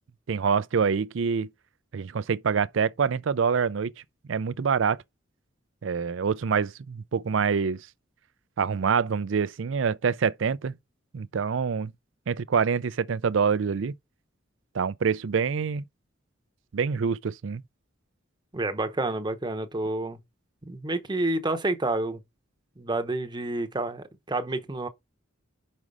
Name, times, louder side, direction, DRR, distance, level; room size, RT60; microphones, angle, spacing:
voice 1, 0.3-1.5 1.9-3.9 4.3-5.0 5.8-7.9 8.6-10.8 11.1-11.9 12.3-13.9 14.7-15.8 16.7-17.6, right 6 dB, 70° right, 0.5 m, -26 dB
voice 2, 18.5-20.2 20.6-22.2 22.8-24.9, right 2 dB, 25° right, 0.8 m, -29 dB
6.1 x 5.4 x 4.8 m
head